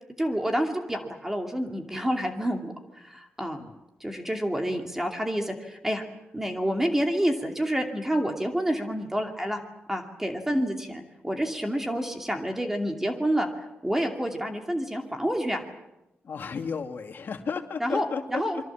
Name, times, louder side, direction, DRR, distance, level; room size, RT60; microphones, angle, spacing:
voice 1, 0.2-3.6 4.0-6.0 6.3-9.6 9.9-13.5 13.8-15.6 17.8-18.6, equal, 10° right, 3 dB, 2.6 m, -28 dB
voice 2, 16.2-18.4, left 5 dB, 55° left, 5 dB, 2.5 m, -33 dB
27.0 x 23.5 x 7.4 m, 0.93 s
wide cardioid pair, 160°, 4 cm